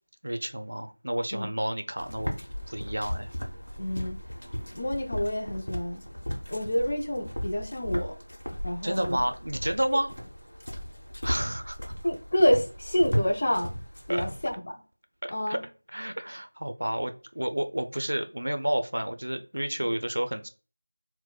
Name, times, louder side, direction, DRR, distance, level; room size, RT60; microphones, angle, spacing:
voice 1, 0.2-2.4 2.7-3.3 8.8-10.1 11.2-11.9 14.1-14.2 15.2-15.6 15.9-20.5, right 1 dB, 75° right, 0.4 m, -30 dB
sound 1, 2.0-14.5, equal, 85° left, 0.9 m, -36 dB
voice 2, 3.8-4.2 4.7-6.0 6.5-8.2 8.6-9.2 9.8-10.0 12.0-13.7 14.1-14.8 15.3-15.6 19.8-20.0, equal, 35° left, 0.5 m, -28 dB
4.2 x 2.1 x 2.2 m
figure-of-eight pair, 175°, 0 cm